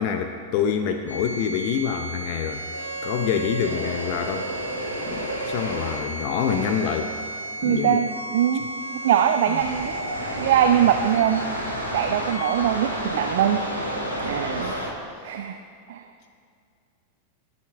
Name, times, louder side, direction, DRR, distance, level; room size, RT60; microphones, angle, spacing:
voice 1, 0.0-2.6 3.0-4.5 5.1-7.1 7.6-8.0 8.6-8.7 9.5-9.6 14.6-14.8, left 8 dB, 45° left, 6 dB, 0.7 m, -26 dB
sound 1, 1.1-14.9, right 1 dB, 85° left, 2.6 m, -31 dB
voice 2, 7.6-8.6 9.0-10.0 10.4-11.5 11.9-13.6 14.2-14.7 15.2-15.6 15.9-16.0, right 10 dB, 55° right, 7 dB, 0.5 m, -22 dB
19.5 x 7.9 x 3.5 m, 2.4 s
figure-of-eight pair, 90°, 0 cm